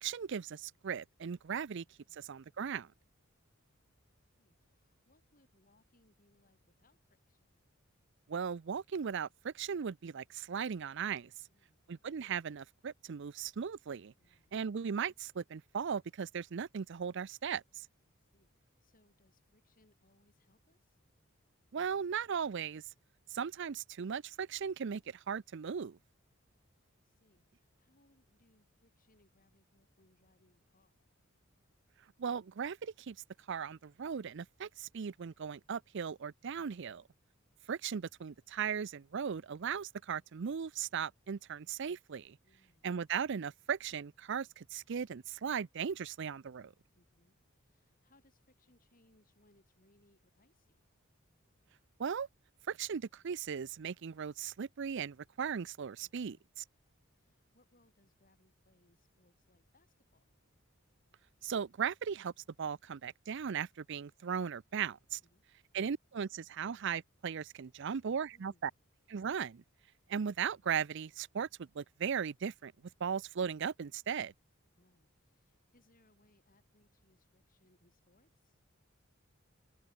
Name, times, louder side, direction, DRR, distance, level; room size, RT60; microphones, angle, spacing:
voice 1, 0.0-1.8 2.1-2.9 8.3-11.3 11.9-14.1 14.5-17.9 21.7-22.8 23.3-26.0 32.2-33.2 33.5-37.0 37.7-42.4 42.8-46.7 52.0-52.3 52.7-56.4 61.4-62.3 62.6-65.2 65.7-68.7 69.1-69.6 70.1-72.7 73.0-74.3, right 7 dB, 60° right, 0.5 m, -37 dB
voice 2, 4.4-7.6 11.5-11.8 14.2-14.6 18.0-21.0 26.5-26.7 26.9-31.2 36.5-37.1 42.4-42.9 46.9-50.8 56.0-56.4 57.1-60.3 64.9-65.4 68.3-68.8 74.7-78.6, left 1 dB, 40° left, 8.0 m, -72 dB
head